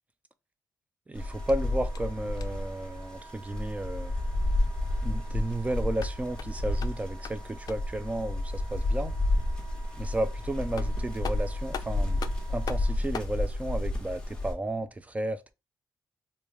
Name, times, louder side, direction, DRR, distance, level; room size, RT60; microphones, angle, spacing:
voice 1, 1.1-4.2 5.0-9.1 10.0-12.2 12.5-15.5, right 1 dB, 20° right, 0.4 m, -33 dB
sound 1, 1.2-14.5, left 1 dB, 10° left, 1.1 m, -31 dB
Wind instrument woodwind instrument, 1.2-13.0, right 4 dB, 45° right, 1.2 m, -51 dB
sound 2, 1.5-2.8 5.8-8.0 10.3-10.4 10.8-13.4, left 7 dB, 55° left, 0.4 m, -43 dB
3.5 x 2.6 x 3.1 m
cardioid pair, 105°, 8 cm